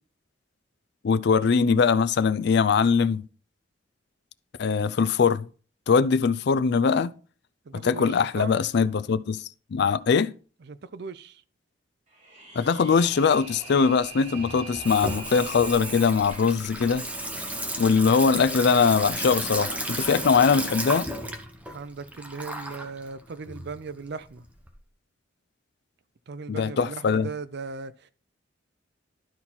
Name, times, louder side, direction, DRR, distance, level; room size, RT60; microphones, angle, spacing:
voice 1, 1.0-3.2 4.6-5.5 5.9-7.1 7.8-9.4 9.7-10.3 12.5-17.0 17.8-21.1 26.5-27.3, left 5 dB, 60° left, 0.4 m, -22 dB
voice 2, 7.7-8.5 10.7-11.4 21.7-24.4 26.3-28.1, right 4 dB, 60° right, 0.5 m, -38 dB
sound 1, 12.1-16.5, right 4 dB, 40° right, 3.9 m, -43 dB
Water tap faucet / Sink (filling or washing), 13.0-24.7, right 1 dB, 10° right, 1.0 m, -34 dB
12.0 x 4.3 x 4.2 m
head